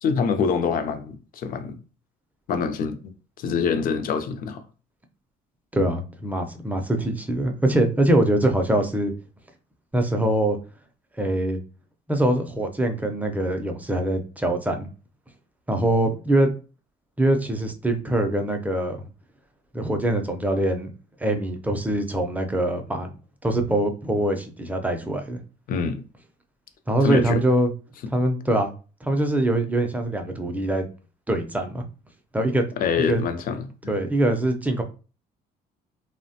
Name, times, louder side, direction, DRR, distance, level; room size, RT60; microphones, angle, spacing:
voice 1, 0.0-1.8 2.5-4.6 25.7-26.0 27.0-27.4 32.8-33.7, left 6 dB, 55° left, 0.5 m, -25 dB
voice 2, 5.7-9.1 9.9-10.6 11.2-11.6 12.1-14.9 15.7-16.5 17.2-19.1 19.7-20.9 21.2-23.1 23.4-25.4 26.9-27.7 28.1-28.7 29.0-30.8 31.3-31.8 32.3-32.6 33.1-33.2 33.9-34.8, right 1 dB, 10° right, 0.5 m, -23 dB
3.0 x 2.1 x 2.7 m
cardioid pair, 110°, 17 cm